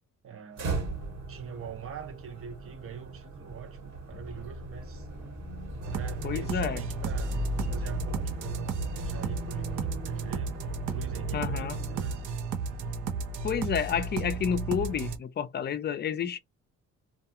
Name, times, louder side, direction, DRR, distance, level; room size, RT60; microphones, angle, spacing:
voice 1, 0.2-0.9 1.3-5.1 5.9-12.2, right 7 dB, 45° right, 0.8 m, -43 dB
sound 1, 0.5-12.5, right 1 dB, 65° right, 1.3 m, -38 dB
sound 2, 4.1-12.3, left 2 dB, 5° right, 0.7 m, -48 dB
sound 3, 5.8-15.2, right 4 dB, 85° right, 0.7 m, -34 dB
voice 2, 6.2-6.8 11.3-11.8 13.4-16.4, left 8 dB, 35° left, 0.4 m, -30 dB
2.4 x 2.3 x 2.7 m
cardioid pair, 90°, 30 cm